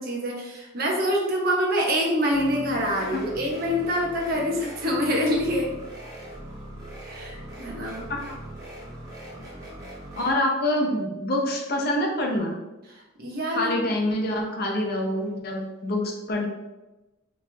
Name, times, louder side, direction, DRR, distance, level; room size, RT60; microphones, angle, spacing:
voice 1, 0.0-5.7 7.0-8.1 12.9-13.7, equal, 45° right, -1 dB, 0.8 m, -26 dB
sound 1, 2.3-10.3, right 1 dB, 15° right, 1.0 m, -40 dB
voice 2, 10.2-12.6 13.5-16.5, left 1 dB, 50° left, 0 dB, 0.7 m, -26 dB
3.1 x 2.5 x 4.3 m, 1.0 s
head